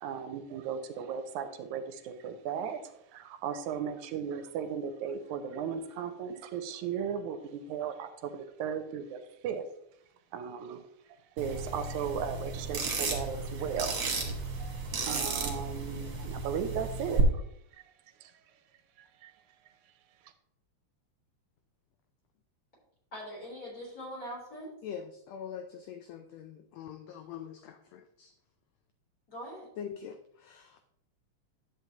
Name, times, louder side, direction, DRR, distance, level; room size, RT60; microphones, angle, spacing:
voice 1, 0.0-9.6 10.3-10.8 11.4-14.0 14.6-14.7 15.0-17.4 18.2-18.3 19.0-19.3, right 7 dB, 85° right, 9 dB, 2.1 m, -36 dB
sound 1, 11.4-17.2, right 4 dB, 45° right, 1.8 m, -34 dB
voice 2, 23.1-24.7 29.3-29.7, equal, 30° left, -5 dB, 4.0 m, -42 dB
voice 3, 24.8-28.3 29.8-30.8, left 8 dB, 80° left, 7 dB, 1.6 m, -43 dB
10.5 x 7.7 x 2.9 m, 0.76 s
omnidirectional pair, 3.4 m